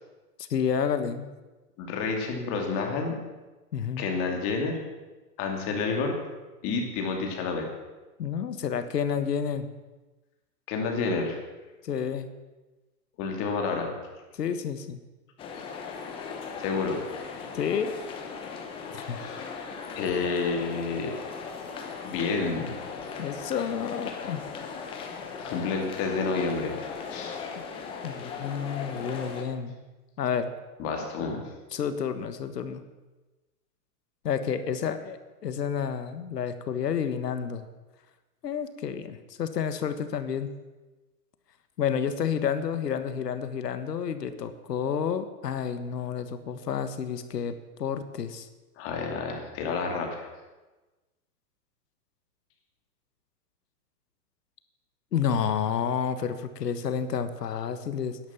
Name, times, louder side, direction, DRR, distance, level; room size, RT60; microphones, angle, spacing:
voice 1, 0.4-1.3 3.7-4.1 8.2-9.7 11.8-12.3 14.3-15.0 17.5-17.9 18.9-19.2 23.2-24.4 28.0-29.7 30.2-30.5 31.7-32.8 34.2-37.6 38.4-40.5 41.8-48.5 55.1-58.2, left 7 dB, 90° left, 10 dB, 1.5 m, -30 dB
voice 2, 1.8-3.2 4.0-4.8 5.4-6.1 6.6-7.7 10.7-11.4 13.2-13.9 16.6-17.0 19.2-19.4 19.9-21.1 22.0-22.7 25.4-26.7 27.1-27.4 30.8-31.4 48.8-50.3, left 4 dB, 25° left, 2 dB, 2.6 m, -29 dB
sound 1, 15.4-29.4, left 5 dB, 10° left, 0.8 m, -38 dB
12.0 x 11.0 x 7.2 m, 1.2 s
hypercardioid pair, 155°, 47 cm